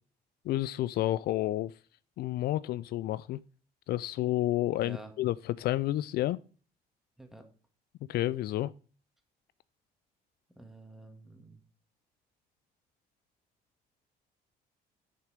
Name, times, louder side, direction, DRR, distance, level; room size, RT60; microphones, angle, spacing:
voice 1, 0.4-1.7 2.2-3.4 3.9-6.4 8.1-8.7, left 15 dB, 65° left, 0.4 m, -30 dB
voice 2, 4.8-5.1 7.2-7.5 10.6-11.6, right 2 dB, ahead, 2.1 m, -49 dB
9.5 x 6.8 x 5.0 m
cardioid pair, 110°, 17 cm